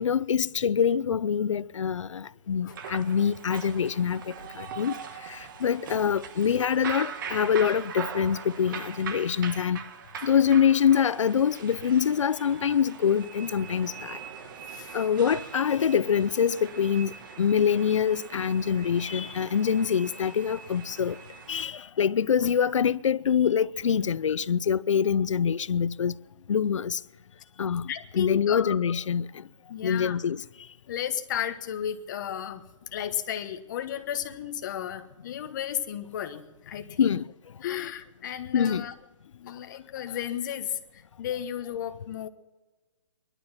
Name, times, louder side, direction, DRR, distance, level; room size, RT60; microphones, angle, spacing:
voice 1, 0.0-4.2 4.6-4.9 5.3-9.8 10.2-14.2 14.9-17.1 17.4-21.2 21.5-26.2 26.5-27.0 27.6-29.3 29.8-30.4 37.0-37.2 38.5-38.8, left 7 dB, 90° left, 0.6 m, -25 dB
sound 1, 2.7-21.6, right 7 dB, 45° right, 1.3 m, -41 dB
voice 2, 27.9-28.8 29.7-30.2 30.9-32.6 32.9-37.2 37.6-38.9 39.4-42.3, left 10 dB, 40° left, 1.3 m, -33 dB
20.5 x 12.0 x 5.8 m
hypercardioid pair, 160°, 16 cm